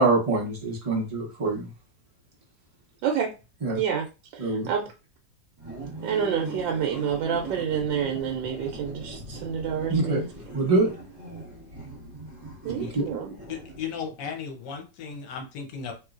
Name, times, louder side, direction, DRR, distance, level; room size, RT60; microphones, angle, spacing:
voice 1, 0.0-1.7 3.6-3.8 4.4-4.7 9.9-10.2 10.5-10.9 12.8-13.0, right 2 dB, 45° right, -2 dB, 0.4 m, -24 dB
voice 2, 3.7-4.1 4.3-4.9 6.0-10.2 12.6-13.3, right 8 dB, 85° right, 2 dB, 1.3 m, -28 dB
sound 1, 5.6-14.1, right 1 dB, 25° right, 1.6 m, -40 dB
voice 3, 13.5-15.9, left 6 dB, 75° left, 4 dB, 1.4 m, -35 dB
3.1 x 3.0 x 2.4 m, 0.30 s
omnidirectional pair, 1.9 m